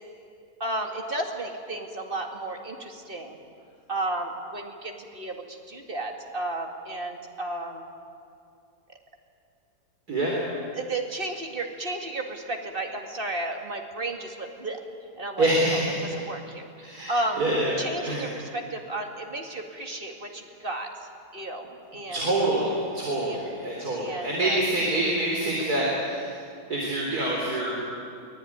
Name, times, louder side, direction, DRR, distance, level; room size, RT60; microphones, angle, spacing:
voice 1, 0.6-3.4 3.9-7.8 10.7-14.8 15.2-16.6 17.1-17.4 17.8-20.9 21.3-22.2 23.3-23.4 24.0-24.6, right 2 dB, 35° right, 3 dB, 2.4 m, -33 dB
voice 2, 15.4-16.2 16.8-17.7 18.0-18.3 22.1-26.4 26.7-27.8, right 1 dB, 70° right, -3 dB, 4.2 m, -26 dB
23.5 x 19.0 x 9.6 m, 2.4 s
omnidirectional pair, 1.7 m